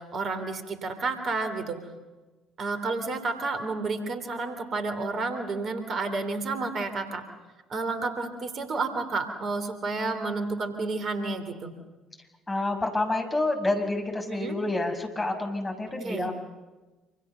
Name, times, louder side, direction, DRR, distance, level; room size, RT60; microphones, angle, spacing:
voice 1, 0.0-1.8 2.6-7.2 7.7-11.7 14.3-14.6 16.0-16.3, right 3 dB, 45° right, 8 dB, 3.3 m, -31 dB
voice 2, 12.5-16.3, left 2 dB, 20° left, 3 dB, 6.2 m, -28 dB
27.5 x 27.0 x 6.9 m, 1.2 s
figure-of-eight pair, 50°, 0 cm